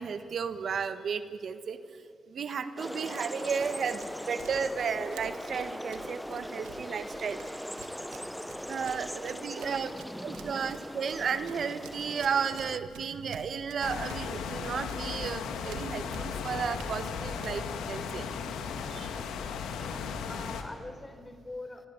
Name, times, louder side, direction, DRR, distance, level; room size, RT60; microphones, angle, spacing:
voice 1, 0.0-2.0 2.3-7.4 8.7-9.9 10.2-18.3 18.9-19.2, right 6 dB, 65° right, 10 dB, 1.4 m, -33 dB
sound 1, 2.8-12.8, equal, 5° left, 0.8 m, -40 dB
Run, 3.0-18.3, right 7 dB, 90° right, 1.8 m, -53 dB
voice 2, 9.5-9.8 19.8-21.9, left 2 dB, 25° left, 9 dB, 4.1 m, -44 dB
sound 2, 13.8-20.6, left 6 dB, 85° left, 2.4 m, -36 dB
25.0 x 24.5 x 9.7 m, 2.3 s
supercardioid pair, 50°, 0 cm